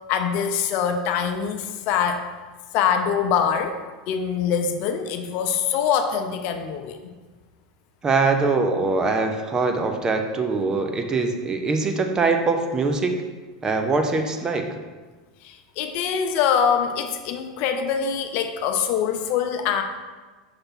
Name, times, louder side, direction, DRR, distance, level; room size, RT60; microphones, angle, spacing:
voice 1, 0.1-2.2 2.7-3.7 4.1-7.0 15.4-19.8, left 7 dB, 55° left, 6 dB, 0.6 m, -24 dB
voice 2, 8.0-13.1 13.6-14.8, right 3 dB, 20° right, 5 dB, 0.7 m, -23 dB
5.8 x 3.3 x 5.8 m, 1.3 s
supercardioid pair, 115°, 3 cm